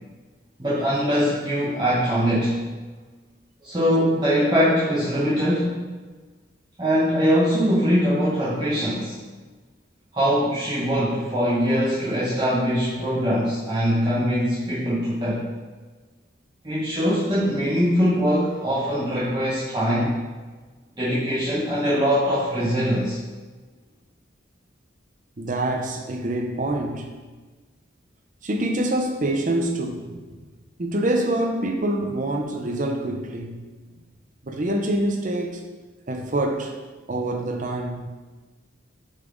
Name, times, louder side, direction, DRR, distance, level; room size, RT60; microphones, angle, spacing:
voice 1, 0.6-2.6 3.6-5.8 6.8-9.2 10.1-15.4 16.6-20.1 21.0-23.2, equal, 20° right, -9 dB, 0.9 m, -22 dB
voice 2, 25.4-27.1 28.4-30.1 30.8-33.6 34.4-35.6 36.1-36.7 37.1-38.1, right 1 dB, 40° right, 3 dB, 0.6 m, -25 dB
6.3 x 4.0 x 3.7 m, 1.3 s
head